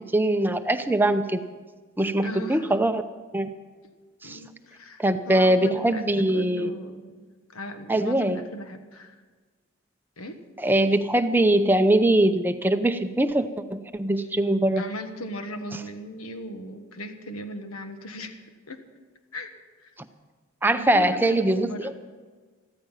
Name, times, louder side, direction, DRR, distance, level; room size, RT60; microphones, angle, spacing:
voice 1, 0.1-1.4 2.0-3.0 3.3-3.5 4.2-4.4 5.0-6.7 7.9-8.4 10.6-14.8 15.7-15.8 20.6-21.9, right 1 dB, 10° right, 9 dB, 0.6 m, -22 dB
voice 2, 2.2-2.7 4.2-7.1 7.5-9.2 10.2-10.4 14.2-14.3 14.8-18.8 19.3-19.5 19.8-19.9 20.7-21.9, left 1 dB, 80° left, 7 dB, 1.4 m, -37 dB
14.0 x 14.0 x 5.7 m, 1.4 s
head